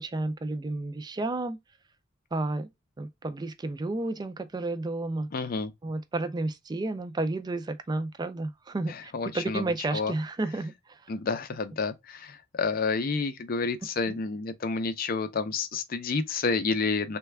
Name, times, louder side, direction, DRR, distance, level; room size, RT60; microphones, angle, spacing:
voice 1, 0.0-1.6 2.3-2.7 3.0-5.3 5.8-11.0 14.1-14.2, right 2 dB, 20° right, 0.3 m, -32 dB
voice 2, 5.3-5.7 8.9-9.6 9.9-10.1 11.1-17.2, left 4 dB, 50° left, 0.5 m, -29 dB
3.3 x 2.2 x 3.2 m
head